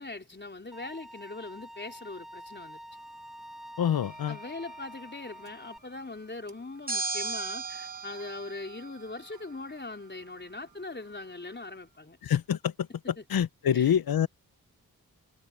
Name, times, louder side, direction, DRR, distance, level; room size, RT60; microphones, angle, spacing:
voice 1, 0.0-2.8 4.3-12.2 13.2-13.3 13.7-13.9, left 3 dB, 30° left, 4.3 m, -41 dB
Bowed string instrument, 0.7-5.8, equal, ahead, 1.0 m, -47 dB
sound 1, 2.9-11.8, right 6 dB, 80° right, 7.0 m, -64 dB
voice 2, 3.8-4.4 12.2-12.9 13.3-14.3, left 9 dB, 75° left, 0.8 m, -26 dB
sound 2, 4.0-4.9 6.9-9.5, right 3 dB, 25° right, 1.1 m, -37 dB
wide cardioid pair, 75°, 36 cm